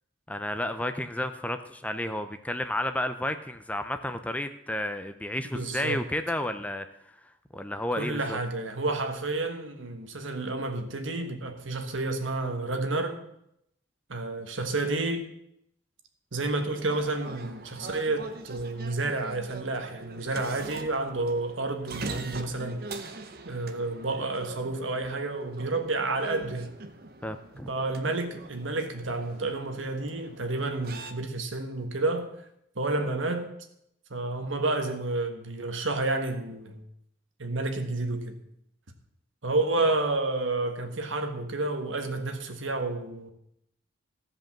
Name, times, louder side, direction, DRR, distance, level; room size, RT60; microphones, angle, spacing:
voice 1, 0.3-6.9 7.5-8.4 27.2-27.7, left 1 dB, 5° left, 9 dB, 0.5 m, -31 dB
voice 2, 5.5-6.0 8.0-13.2 14.1-15.2 16.3-23.0 23.4-26.7 27.7-32.3 32.7-33.5 34.1-36.8 37.4-38.4 39.4-43.3, right 2 dB, 80° right, 6 dB, 1.4 m, -30 dB
sound 1, 16.7-31.1, right 3 dB, 50° right, 0.8 m, -43 dB
14.5 x 5.3 x 7.3 m, 0.77 s
head